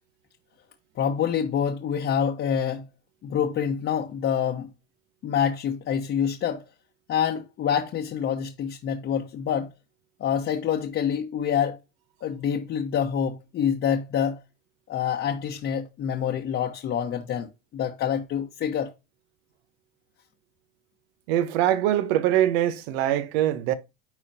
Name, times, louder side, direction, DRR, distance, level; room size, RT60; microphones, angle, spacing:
voice 1, 1.0-2.8 3.2-4.7 5.2-6.6 7.1-9.7 10.2-11.8 12.2-14.4 14.9-17.5 17.7-18.9, left 8 dB, 35° left, 1.2 m, -26 dB
voice 2, 21.3-23.7, right 12 dB, 70° right, 1.2 m, -23 dB
10.5 x 4.2 x 2.8 m
supercardioid pair, 110°, 33 cm